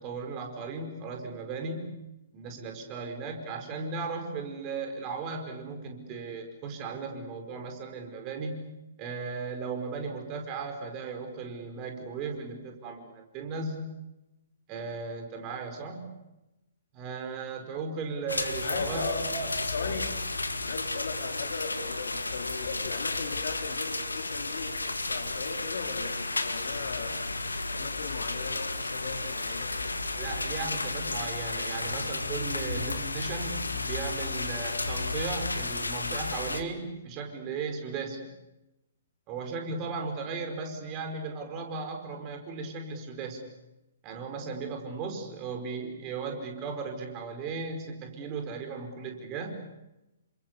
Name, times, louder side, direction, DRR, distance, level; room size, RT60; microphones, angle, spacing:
voice 1, 0.0-2.0 2.3-8.7 9.0-13.9 14.7-16.2 16.9-19.5 19.8-20.0 30.1-38.3 39.3-43.4 44.0-49.6, right 4 dB, 25° right, 5.0 m, -36 dB
sound 1, 18.3-36.6, left 3 dB, 75° left, 2.1 m, -33 dB
voice 2, 18.6-20.2 20.6-27.3 27.7-30.0, left 4 dB, 55° left, 4.1 m, -38 dB
30.0 x 26.0 x 6.9 m
figure-of-eight pair, 120°, 0 cm